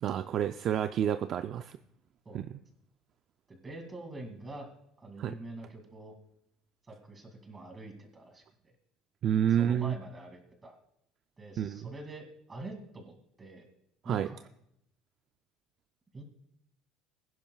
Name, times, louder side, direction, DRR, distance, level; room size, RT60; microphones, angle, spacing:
voice 1, 0.0-1.8 2.3-2.4 5.2-5.3 9.2-10.0 11.6-11.9 14.1-14.3, right 9 dB, 45° right, 10 dB, 0.4 m, -29 dB
voice 2, 3.5-4.7 5.0-6.1 6.9-8.7 9.5-10.8 11.4-13.1 13.4-13.7 14.0-14.5 16.1-16.2, right 2 dB, 20° right, 4 dB, 2.4 m, -45 dB
22.0 x 10.5 x 2.3 m, 0.76 s
cardioid pair, 140°, 0 cm